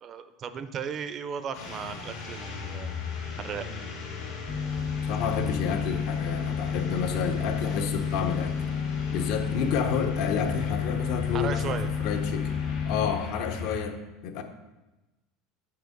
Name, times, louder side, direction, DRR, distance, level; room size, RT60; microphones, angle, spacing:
voice 1, 0.0-2.9 3.4-3.6 11.3-11.9, right 7 dB, 30° right, 11 dB, 0.4 m, -35 dB
sound 1, 1.5-13.8, left 5 dB, 80° left, 2.0 m, -37 dB
sound 2, 4.5-13.1, left 6 dB, 30° left, 0.5 m, -31 dB
voice 2, 5.1-8.6 9.1-12.5 12.8-14.4, left 6 dB, 60° left, 7 dB, 0.7 m, -30 dB
5.8 x 5.2 x 5.1 m, 1.1 s
cardioid pair, 155°, 0 cm